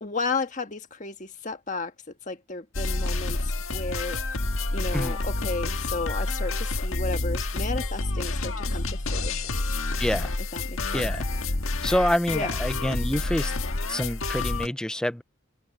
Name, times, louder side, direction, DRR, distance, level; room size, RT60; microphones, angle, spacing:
voice 1, 0.0-4.2 4.7-9.6 10.5-11.1 12.3-12.5, left 3 dB, 35° left, 1.6 m, -33 dB
sound 1, 2.7-14.7, left 2 dB, 70° left, 1.5 m, -28 dB
voice 2, 10.0-10.3 10.9-11.2 11.8-13.5 13.9-15.2, left 1 dB, 5° left, 0.3 m, -27 dB
head